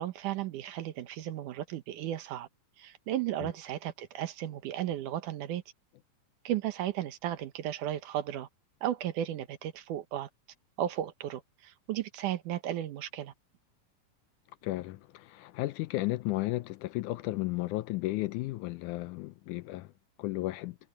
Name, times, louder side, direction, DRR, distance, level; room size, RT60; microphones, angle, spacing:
voice 1, 0.0-2.5 2.8-5.6 6.4-8.5 8.8-10.3 10.8-13.3, right 12 dB, 75° right, 2.5 m, -34 dB
voice 2, 14.6-19.9 20.2-20.8, left 18 dB, 80° left, 1.9 m, -34 dB
omnidirectional pair, 3.8 m